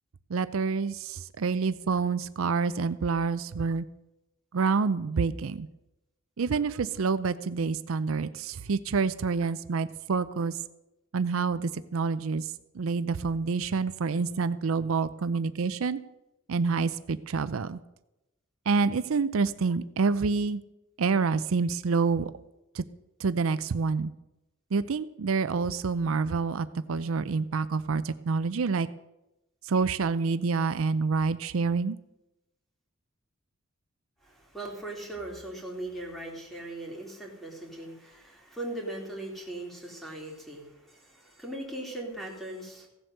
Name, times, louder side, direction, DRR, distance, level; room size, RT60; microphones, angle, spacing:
voice 1, 0.3-3.8 4.5-5.7 6.4-10.6 11.1-16.0 16.5-17.8 18.7-20.6 21.0-22.3 22.7-22.8 23.2-24.1 24.7-28.9 29.6-32.0, right 4 dB, 80° right, 14 dB, 0.5 m, -27 dB
voice 2, 34.2-42.9, right 1 dB, ahead, -1 dB, 3.2 m, -39 dB
16.0 x 7.8 x 6.6 m, 0.94 s
head